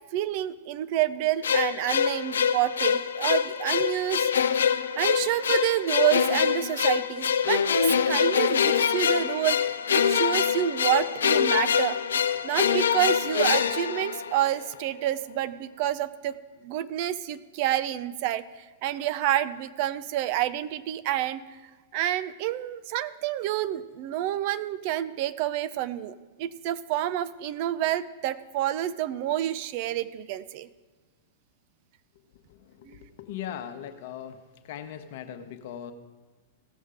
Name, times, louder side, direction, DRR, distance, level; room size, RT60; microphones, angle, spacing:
voice 1, 0.1-4.3 5.0-9.6 9.9-12.0 12.4-16.4 16.6-18.4 18.8-21.4 21.9-30.7 32.8-33.1, right 13 dB, 50° right, 14 dB, 0.5 m, -28 dB
sound 1, 1.4-14.7, left 7 dB, 75° left, 0.4 m, -25 dB
voice 2, 32.5-34.4 34.6-35.9, left 10 dB, 60° left, 8 dB, 1.0 m, -39 dB
16.5 x 6.4 x 5.0 m, 1.3 s
hypercardioid pair, 100°, 0 cm